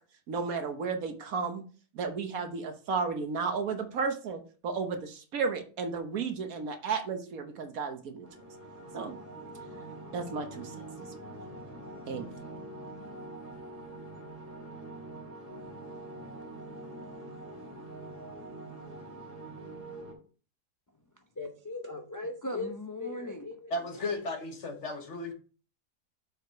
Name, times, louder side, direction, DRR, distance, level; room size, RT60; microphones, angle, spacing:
voice 1, 0.3-1.6 1.9-8.3 8.9-9.2 10.1-10.9 12.1-12.3, right 5 dB, 65° right, 1.4 m, -33 dB
sound 1, 8.2-20.1, right 2 dB, 10° right, 3.3 m, -44 dB
voice 2, 21.4-24.2, left 2 dB, 25° left, 0.4 m, -38 dB
voice 3, 23.7-25.3, left 2 dB, 50° left, 1.4 m, -35 dB
7.1 x 4.9 x 4.6 m
omnidirectional pair, 1.7 m